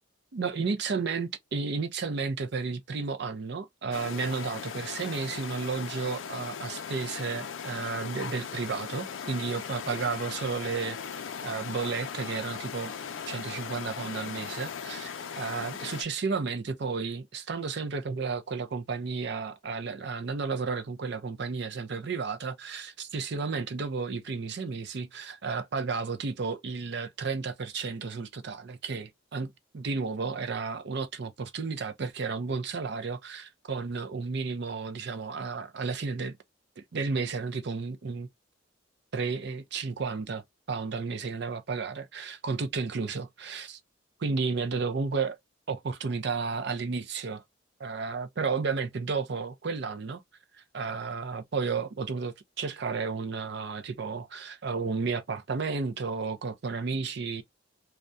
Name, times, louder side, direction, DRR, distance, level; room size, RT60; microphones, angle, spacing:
voice 1, 0.3-12.9 13.3-36.4 36.8-38.3 39.1-40.4 40.7-43.8 44.2-45.4 45.7-47.4 47.8-50.2 50.7-57.4, right 4 dB, 55° right, 0.5 m, -32 dB
sound 1, 3.9-16.0, left 7 dB, 65° left, 0.4 m, -38 dB
2.3 x 2.1 x 2.5 m
head